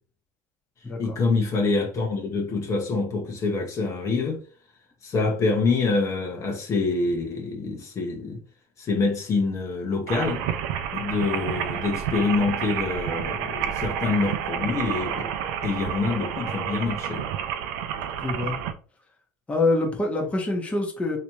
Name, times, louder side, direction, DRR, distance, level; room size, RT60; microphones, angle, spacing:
voice 1, 1.0-4.4 5.0-8.4 8.8-10.4 10.9-15.3 15.6-17.2, left 3 dB, 35° left, 1.0 m, -26 dB
sound 1, 10.1-18.7, right 9 dB, 75° right, 0.5 m, -30 dB
voice 2, 18.2-18.5 19.5-21.2, left 2 dB, 15° left, 1.0 m, -25 dB
3.2 x 2.8 x 3.0 m
supercardioid pair, 105°, 9 cm